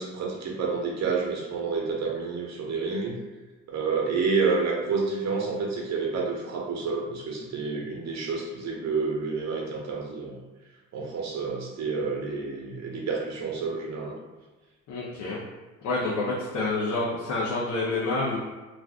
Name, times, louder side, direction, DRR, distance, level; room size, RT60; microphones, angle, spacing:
voice 1, 0.0-3.2 3.7-10.4 10.9-14.2, right 4 dB, 65° right, -2 dB, 0.9 m, -29 dB
voice 2, 14.9-15.4 15.8-18.4, left 2 dB, 70° left, -6 dB, 0.7 m, -28 dB
2.4 x 2.4 x 3.4 m, 1.2 s
cardioid pair, 90°, 30 cm